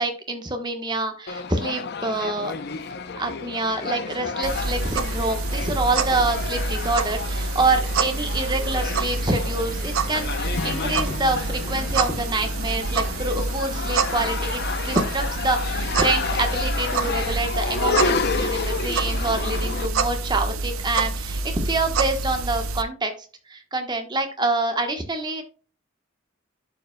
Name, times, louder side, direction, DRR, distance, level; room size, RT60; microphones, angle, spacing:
voice 1, 0.0-2.5 3.2-23.1 23.5-25.4, right 2 dB, 20° right, 5 dB, 1.1 m, -26 dB
sound 1, 1.3-19.9, left 5 dB, 50° left, 0.6 m, -31 dB
sound 2, 4.4-22.8, right 3 dB, 90° right, 0.6 m, -27 dB
Acoustic guitar / Strum, 10.5-14.8, left 3 dB, 85° left, 0.8 m, -38 dB
11.5 x 5.0 x 2.2 m, 0.37 s
head